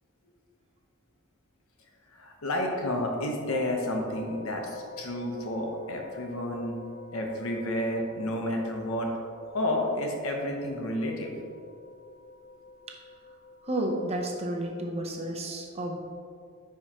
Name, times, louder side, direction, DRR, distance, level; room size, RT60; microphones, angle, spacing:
voice 1, 2.1-6.8 7.1-9.1 9.5-11.3, left 1 dB, 75° left, 1 dB, 1.0 m, -30 dB
sound 1, 3.5-14.6, left 2 dB, 25° left, 0.4 m, -47 dB
voice 2, 13.6-16.0, right 1 dB, 30° right, 1 dB, 0.8 m, -31 dB
10.0 x 4.7 x 2.9 m, 2.3 s
head